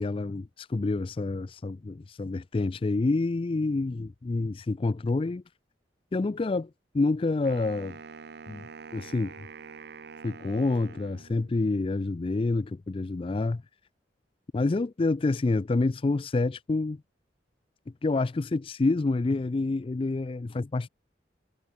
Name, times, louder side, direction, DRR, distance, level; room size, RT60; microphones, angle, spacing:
voice 1, 0.0-5.4 6.1-6.7 6.9-8.0 8.5-9.3 10.2-13.6 14.5-17.0 18.0-20.9, left 3 dB, 30° left, 0.4 m, -28 dB
Wind instrument woodwind instrument, 7.4-11.7, right 5 dB, 60° right, 0.6 m, -46 dB
head